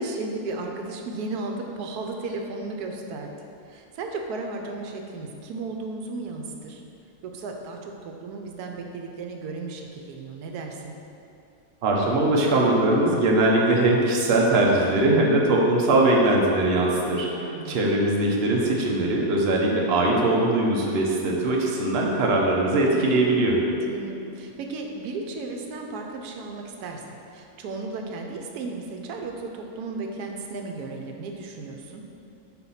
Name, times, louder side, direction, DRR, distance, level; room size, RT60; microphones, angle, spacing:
voice 1, 0.0-3.3 3.7-6.8 7.2-10.9 17.4-17.8 23.7-27.0 27.3-32.0, right 3 dB, 90° right, 2 dB, 1.2 m, -34 dB
voice 2, 11.8-23.6, right 2 dB, 50° right, -2 dB, 0.9 m, -21 dB
4.5 x 4.3 x 5.6 m, 2.6 s
omnidirectional pair, 1.6 m